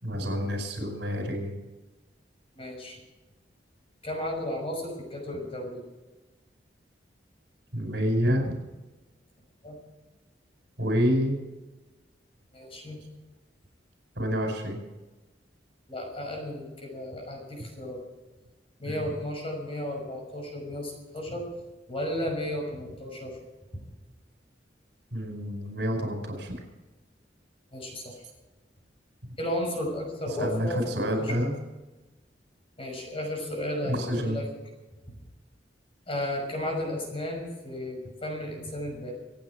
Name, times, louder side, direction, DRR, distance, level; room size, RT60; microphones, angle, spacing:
voice 1, 0.0-1.5 7.7-8.6 10.8-11.4 14.2-14.8 18.9-19.0 25.1-26.6 30.4-31.5 33.8-34.4, equal, 70° right, 2 dB, 5.4 m, -28 dB
voice 2, 2.6-3.0 4.0-5.8 9.6-9.8 12.5-13.0 15.9-18.0 18.8-21.5 21.9-23.4 27.7-28.2 29.4-31.4 32.8-34.5 35.1-35.2 36.1-39.1, left 1 dB, 30° left, 1 dB, 5.9 m, -34 dB
26.5 x 9.4 x 4.9 m, 1.1 s
head